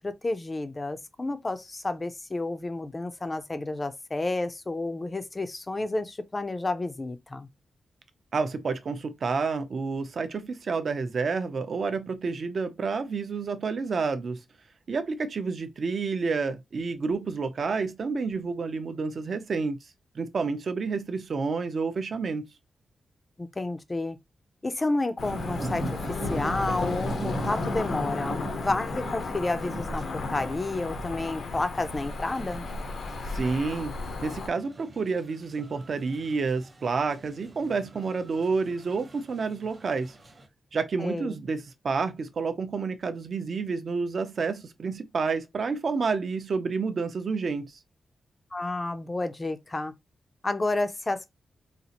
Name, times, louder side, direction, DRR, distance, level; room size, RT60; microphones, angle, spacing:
voice 1, 0.0-7.5 23.4-24.2 24.6-32.7 41.0-41.4 48.5-49.9 50.4-51.3, left 2 dB, 20° left, 0.4 m, -31 dB
voice 2, 8.3-14.4 14.9-19.8 20.1-22.5 33.3-40.1 40.7-47.8, right 4 dB, 50° right, 0.6 m, -29 dB
Cricket / Motor vehicle (road), 25.2-34.5, left 4 dB, 75° left, 0.7 m, -34 dB
sound 1, 25.2-40.5, right 1 dB, 25° right, 0.8 m, -40 dB
4.1 x 2.4 x 2.8 m
wide cardioid pair, 165°, 0 cm